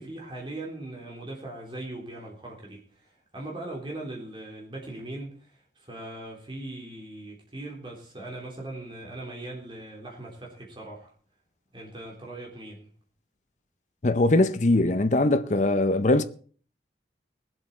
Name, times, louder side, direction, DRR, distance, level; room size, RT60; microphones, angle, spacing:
voice 1, 0.0-11.1 11.7-12.9, right 2 dB, 25° right, 3.6 m, -40 dB
voice 2, 14.0-16.2, left 2 dB, 40° left, 0.7 m, -21 dB
20.5 x 8.0 x 4.4 m
head